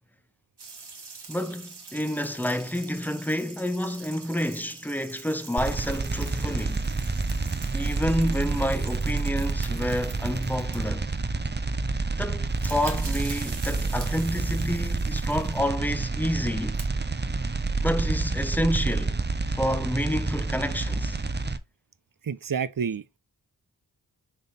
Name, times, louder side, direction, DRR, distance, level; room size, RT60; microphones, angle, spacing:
sound 1, 0.6-11.1 12.2-12.3 12.4-15.7 16.5-16.8, right 4 dB, 85° right, 1.9 m, -44 dB
voice 1, 1.3-6.9 7.7-11.1 12.2-16.8 17.8-19.2 19.5-21.2, equal, 5° left, 0.8 m, -29 dB
sound 2, 5.6-21.6, right 3 dB, 25° right, 0.8 m, -28 dB
voice 2, 22.2-23.2, right 6 dB, 60° right, 0.6 m, -29 dB
6.8 x 3.8 x 4.2 m
wide cardioid pair, 75°, 39 cm